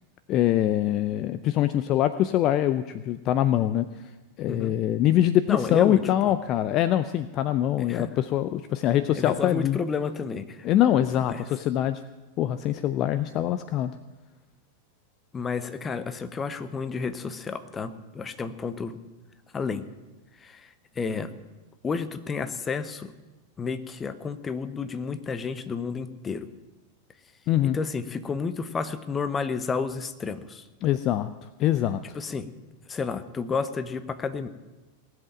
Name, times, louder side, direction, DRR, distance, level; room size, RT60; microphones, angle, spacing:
voice 1, 0.3-3.9 4.4-9.8 10.6-12.0 12.4-13.9 27.5-27.8 30.8-31.3 31.6-32.0, left 12 dB, 35° left, 13 dB, 0.5 m, -24 dB
voice 2, 5.5-6.1 7.8-8.1 9.1-10.7 11.3-11.4 15.3-19.0 19.5-19.9 20.4-20.7 21.0-21.3 21.8-23.1 23.6-26.5 27.6-30.7 32.1-32.5 32.9-34.5, left 5 dB, 20° left, 11 dB, 0.9 m, -31 dB
18.5 x 7.9 x 8.7 m, 1.2 s
figure-of-eight pair, 90°, 0 cm